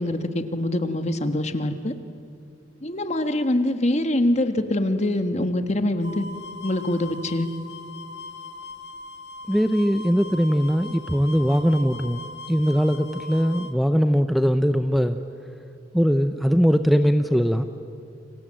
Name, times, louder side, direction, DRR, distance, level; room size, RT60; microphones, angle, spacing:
voice 1, 0.0-1.9 2.8-6.3 6.6-7.5, left 1 dB, 40° left, 8 dB, 1.5 m, -24 dB
sound 1, 6.0-13.7, left 3 dB, 65° left, 1.5 m, -40 dB
voice 2, 9.5-15.2 15.9-17.6, equal, ahead, 9 dB, 0.7 m, -21 dB
29.5 x 26.5 x 7.6 m, 2.5 s
head